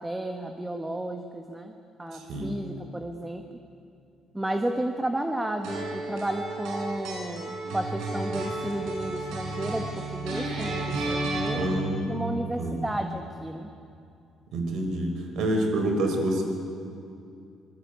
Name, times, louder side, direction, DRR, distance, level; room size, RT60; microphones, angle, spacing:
voice 1, 0.0-3.4 4.3-11.8 12.1-13.7, right 1 dB, 10° right, 5 dB, 1.4 m, -32 dB
voice 2, 2.1-2.6 11.5-12.9 14.5-16.4, right 1 dB, 70° right, 4 dB, 5.5 m, -28 dB
sound 1, 5.6-11.5, right 2 dB, 85° right, 7.5 m, -32 dB
25.5 x 22.0 x 9.5 m, 2.6 s
cardioid pair, 130°, 0 cm